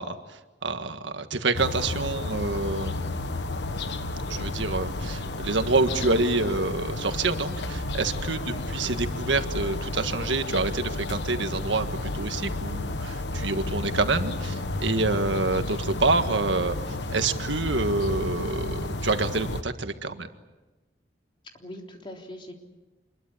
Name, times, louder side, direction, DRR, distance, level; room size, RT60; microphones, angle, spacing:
voice 1, 0.0-3.2 4.3-20.3, right 3 dB, 85° right, 8 dB, 1.7 m, -27 dB
sound 1, 1.6-19.6, left 2 dB, 70° left, 1.3 m, -32 dB
voice 2, 8.3-8.7 21.5-22.5, left 1 dB, 25° left, 2 dB, 3.5 m, -42 dB
26.5 x 22.0 x 8.5 m, 1.1 s
head